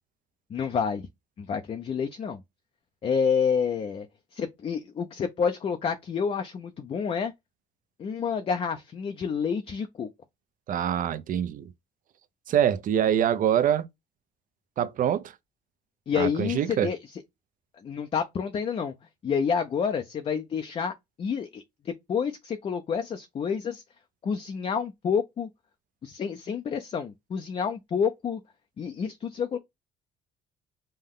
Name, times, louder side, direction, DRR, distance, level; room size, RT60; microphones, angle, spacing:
voice 1, 0.5-1.1 1.4-2.4 3.0-4.1 4.3-7.3 8.0-10.1 16.1-17.0 17.8-18.9 19.2-20.9 21.2-23.8 24.2-25.5 26.0-28.4 28.8-29.6, left 6 dB, 35° left, 0.5 m, -29 dB
voice 2, 10.7-11.7 12.5-13.9 14.8-15.3 16.1-16.9, right 9 dB, 55° right, 0.6 m, -25 dB
5.4 x 2.2 x 3.6 m
cardioid pair, 110°, 17 cm